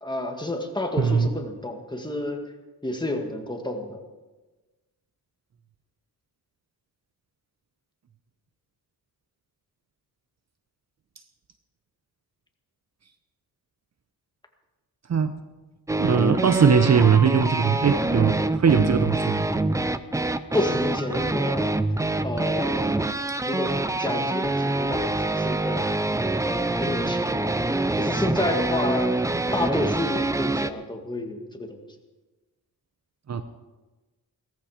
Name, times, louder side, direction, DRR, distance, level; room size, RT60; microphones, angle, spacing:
voice 1, 0.0-2.5 2.8-4.0 20.5-21.7 22.2-25.9 26.4-27.5 27.9-29.2 29.5-31.8, left 1 dB, 10° left, 3 dB, 2.0 m, -30 dB
voice 2, 1.0-1.3 15.1-15.3 16.0-19.5 33.3-33.4, right 6 dB, 45° right, 10 dB, 0.9 m, -20 dB
sound 1, 15.9-30.7, right 2 dB, 10° right, 0.6 m, -25 dB
17.5 x 14.5 x 5.1 m, 1.2 s
cardioid pair, 110°, 38 cm